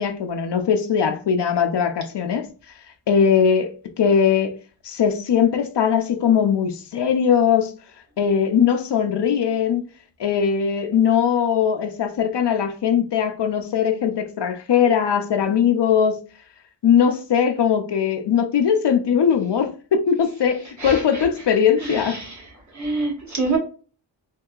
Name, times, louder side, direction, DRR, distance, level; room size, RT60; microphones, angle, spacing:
voice 1, 0.0-2.5 3.1-4.6 4.8-7.7 8.2-9.8 10.2-16.2 16.8-22.2, left 7 dB, 65° left, 0.6 m, -20 dB
voice 2, 20.8-21.2 21.8-22.3 22.7-23.6, right 3 dB, 40° right, 1.5 m, -26 dB
3.7 x 2.7 x 2.3 m
wide cardioid pair, 110°, 45 cm